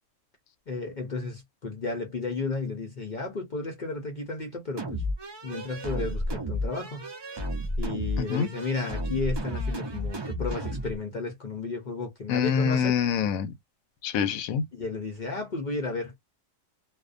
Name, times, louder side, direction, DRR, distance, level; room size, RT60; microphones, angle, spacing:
voice 1, 0.7-5.0 5.4-7.0 7.8-13.0 14.7-16.2, left 3 dB, 45° left, 0.6 m, -33 dB
sound 1, 4.8-11.0, equal, 45° right, 0.3 m, -32 dB
voice 2, 8.2-8.5 12.3-13.5 14.0-14.7, left 7 dB, 90° left, 1.0 m, -25 dB
2.5 x 2.1 x 2.4 m
omnidirectional pair, 1.4 m